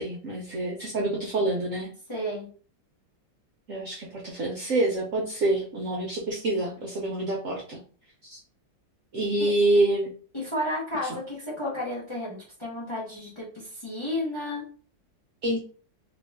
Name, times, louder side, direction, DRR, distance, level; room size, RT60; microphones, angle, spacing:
voice 1, 0.0-1.9 3.7-7.8 8.3-8.4 9.1-10.1 11.0-11.2 15.4-15.6, right 2 dB, 60° right, -2 dB, 0.8 m, -27 dB
voice 2, 2.1-2.5 9.4-9.5 10.3-14.6, left 1 dB, 20° left, -4 dB, 0.8 m, -32 dB
3.0 x 2.6 x 3.4 m, 0.41 s
omnidirectional pair, 2.0 m